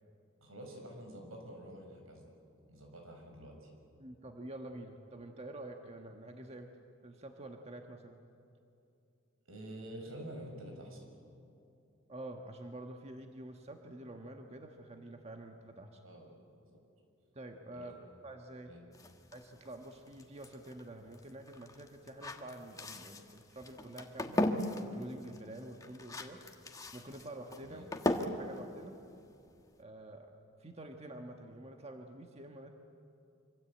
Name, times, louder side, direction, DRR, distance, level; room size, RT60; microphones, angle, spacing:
voice 1, 0.4-2.3 2.7-3.7 9.5-11.0 16.0-16.4 16.7-16.8 17.7-17.9 18.6-18.8 27.6-27.9, right 1 dB, 85° right, 2 dB, 6.5 m, -48 dB
voice 2, 4.0-6.7 7.0-8.2 12.1-16.0 17.3-17.9 18.2-18.7 19.3-24.4 24.8-26.4 26.9-27.8 28.2-28.9 29.8-30.3 30.6-32.7, right 1 dB, 30° right, 4 dB, 1.5 m, -48 dB
sound 1, 18.9-29.8, left 1 dB, 15° left, 1.5 m, -39 dB
26.0 x 25.0 x 8.6 m, 2.7 s
head